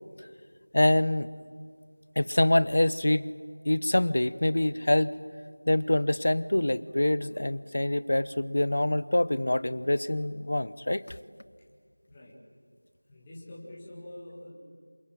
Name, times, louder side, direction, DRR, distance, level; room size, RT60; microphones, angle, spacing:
voice 1, 0.7-1.3 2.2-3.3 3.6-5.1 5.7-11.2, left 1 dB, 35° left, 17 dB, 0.8 m, -25 dB
voice 2, 12.1-12.4 13.1-14.5, left 1 dB, 5° left, -6 dB, 2.0 m, -45 dB
27.0 x 24.0 x 9.1 m, 2.1 s
figure-of-eight pair, 180°, 0 cm